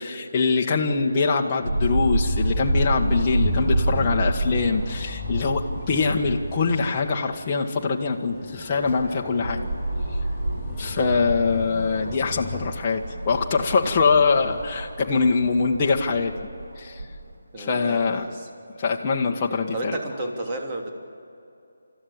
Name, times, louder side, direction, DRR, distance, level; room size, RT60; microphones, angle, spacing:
voice 1, 0.0-9.7 10.8-16.3 16.8-17.0 17.6-18.3 18.8-19.9, left 4 dB, 25° left, -1 dB, 1.5 m, -23 dB
sound 1, 1.6-6.7 7.1-7.2 8.6-17.1 17.9-18.0, right 1 dB, 65° right, 7.9 m, -28 dB
sound 2, 2.9-14.8, left 3 dB, ahead, 5.1 m, -38 dB
voice 2, 10.7-11.0 17.5-18.5 19.7-20.9, right 1 dB, 25° right, 0 dB, 3.2 m, -32 dB
30.0 x 14.0 x 8.8 m, 2.7 s
figure-of-eight pair, 160°, 0 cm